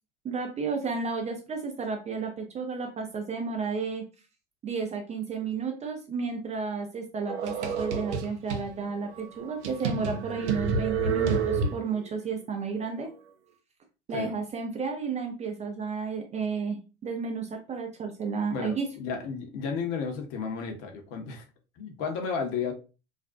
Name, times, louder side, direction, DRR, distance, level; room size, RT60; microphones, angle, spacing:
voice 1, 0.2-4.0 4.6-13.1 14.1-18.9, right 5 dB, 20° right, 3 dB, 0.4 m, -32 dB
sound 1, 7.3-8.7 9.2-9.3 9.6-12.1, right 5 dB, 80° right, 0.5 m, -29 dB
voice 2, 18.5-21.5 21.8-22.7, left 5 dB, 50° left, 4 dB, 0.7 m, -33 dB
2.4 x 2.1 x 2.4 m, 0.32 s
figure-of-eight pair, 80°, 34 cm